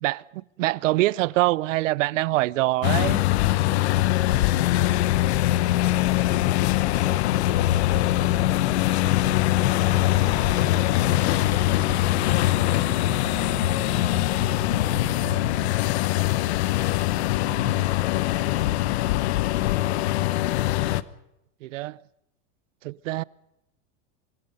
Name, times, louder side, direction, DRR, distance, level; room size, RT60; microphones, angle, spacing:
voice 1, 0.0-3.2 17.4-17.9 21.6-22.0 22.8-23.2, right 18 dB, 90° right, 0.7 m, -25 dB
sound 1, 2.8-21.0, left 16 dB, 60° left, 1.0 m, -22 dB
Animal, 7.5-15.7, right 13 dB, 35° right, 1.5 m, -40 dB
voice 2, 14.4-15.2 18.1-19.3, left 5 dB, 30° left, 5.2 m, -44 dB
25.0 x 21.5 x 5.4 m
supercardioid pair, 170°, 37 cm